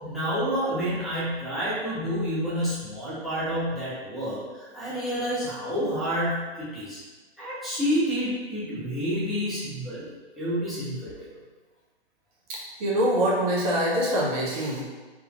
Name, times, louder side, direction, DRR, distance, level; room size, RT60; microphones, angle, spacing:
voice 1, 0.0-7.0 7.4-11.3, equal, ahead, -11 dB, 1.0 m, -29 dB
voice 2, 12.5-14.8, equal, 35° right, -4 dB, 1.0 m, -24 dB
4.3 x 3.6 x 2.5 m, 1.3 s
figure-of-eight pair, 125°, 33 cm